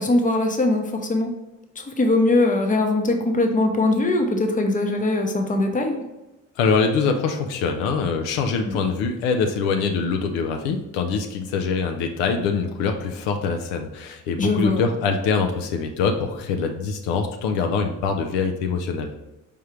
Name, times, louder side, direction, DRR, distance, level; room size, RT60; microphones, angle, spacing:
voice 1, 0.0-1.3 1.8-6.0 8.7-8.8 14.4-14.9, left 2 dB, 20° left, 4 dB, 0.8 m, -21 dB
voice 2, 6.6-19.1, left 5 dB, 70° left, 5 dB, 0.6 m, -24 dB
4.5 x 3.4 x 3.1 m, 0.99 s
hypercardioid pair, 45°, 44 cm